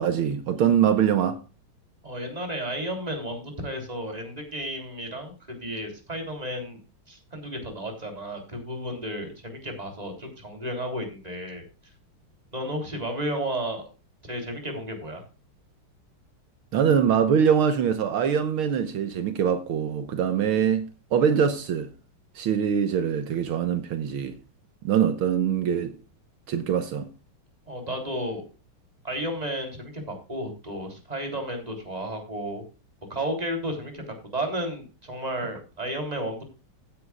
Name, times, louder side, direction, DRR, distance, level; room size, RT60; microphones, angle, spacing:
voice 1, 0.0-1.4 16.7-21.9 22.4-24.3 24.8-26.0 26.5-27.1, right 8 dB, 75° right, 1.9 m, -23 dB
voice 2, 2.0-6.8 7.1-11.6 12.5-13.8 14.2-15.2 27.7-28.4 29.0-32.6 33.1-36.4, right 1 dB, 15° right, 3.6 m, -33 dB
15.5 x 9.5 x 2.4 m
omnidirectional pair, 2.4 m